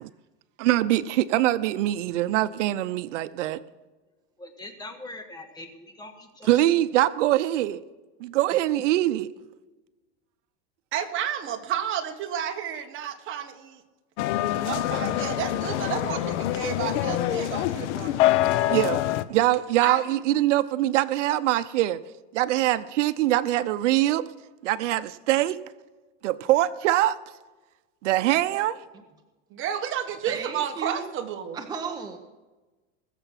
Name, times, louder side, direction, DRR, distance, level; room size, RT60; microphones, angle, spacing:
voice 1, 0.6-3.6 6.4-7.8 8.2-9.3 18.7-19.0 19.3-22.0 22.3-24.3 24.6-25.6 26.2-27.1 28.0-28.8, right 14 dB, 85° right, 14 dB, 0.7 m, -23 dB
voice 2, 4.4-6.6 8.7-8.8, left 2 dB, 10° left, 5 dB, 1.5 m, -42 dB
voice 3, 10.9-13.8 14.6-18.2 19.8-20.0 29.5-31.6, right 9 dB, 35° right, 5 dB, 1.5 m, -31 dB
sound 1, 14.2-19.2, left 13 dB, 75° left, 0.9 m, -25 dB
voice 4, 30.3-31.1 31.5-32.2, right 5 dB, 10° right, 3 dB, 0.9 m, -34 dB
21.0 x 7.0 x 5.8 m, 1.2 s
supercardioid pair, 145°, 35 cm